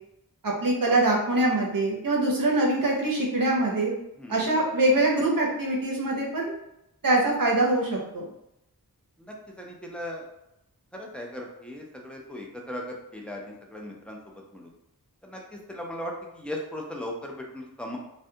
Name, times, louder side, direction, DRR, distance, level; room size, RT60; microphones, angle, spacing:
voice 1, 0.4-3.9 4.3-6.4 7.0-8.2, right 2 dB, 60° right, -1 dB, 0.8 m, -24 dB
voice 2, 9.2-10.2 10.9-14.2 14.5-14.7 15.2-18.0, left 1 dB, 5° left, -1 dB, 0.6 m, -38 dB
2.4 x 2.2 x 2.7 m, 0.84 s
wide cardioid pair, 40°, 38 cm